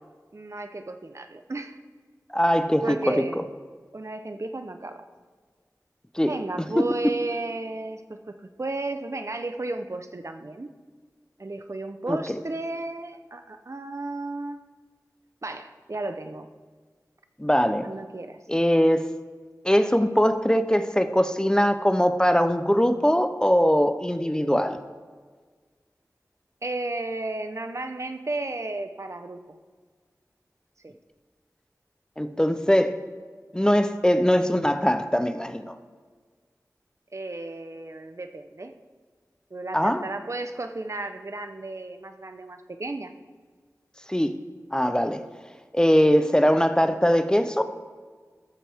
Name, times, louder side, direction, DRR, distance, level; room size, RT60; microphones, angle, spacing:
voice 1, 0.3-1.8 2.8-3.5 3.9-5.1 6.2-8.2 8.6-10.7 11.4-14.6 15.4-16.5 17.8-18.4 26.6-29.6 30.8-30.9 37.1-38.7 39.5-43.1, right 2 dB, 50° right, 7 dB, 0.7 m, -33 dB
voice 2, 2.3-3.4 6.2-6.3 6.8-6.9 12.1-12.2 17.4-17.9 18.5-19.1 19.6-24.8 32.2-33.0 33.5-35.7 39.7-40.0 44.1-44.4 44.7-45.2 45.7-47.6, equal, 10° left, 9 dB, 0.6 m, -21 dB
14.0 x 12.0 x 3.5 m, 1.5 s
wide cardioid pair, 60°, 6 cm